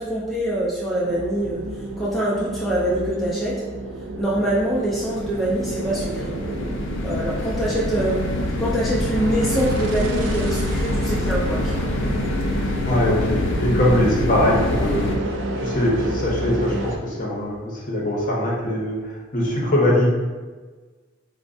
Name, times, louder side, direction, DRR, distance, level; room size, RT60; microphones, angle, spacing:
voice 1, 0.0-1.6 2.0-3.6 4.2-6.3 7.0-8.3 8.6-11.8, right 1 dB, ahead, -8 dB, 0.3 m, -24 dB
sound 1, 1.0-17.0, right 1 dB, 70° right, 0.4 m, -31 dB
sound 2, 4.5-15.2, left 1 dB, 85° left, 0.5 m, -26 dB
voice 2, 12.9-15.1 15.6-19.0 19.3-20.1, left 1 dB, 40° left, -4 dB, 0.7 m, -21 dB
4.3 x 2.1 x 2.6 m, 1.4 s
head